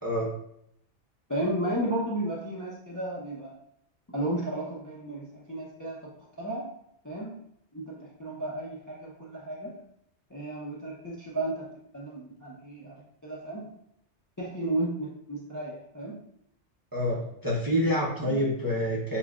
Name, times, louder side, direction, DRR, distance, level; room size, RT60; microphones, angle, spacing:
voice 1, 1.3-3.5 4.1-6.1 6.4-6.7 7.0-7.3 7.7-9.8 10.3-11.7 11.9-13.7 14.4-16.1 18.3-18.4, right 1 dB, 20° left, -5 dB, 0.7 m, -33 dB
voice 2, 16.9-19.2, equal, 20° right, -5 dB, 0.8 m, -27 dB
7.0 x 2.4 x 2.4 m, 0.73 s
omnidirectional pair, 1.2 m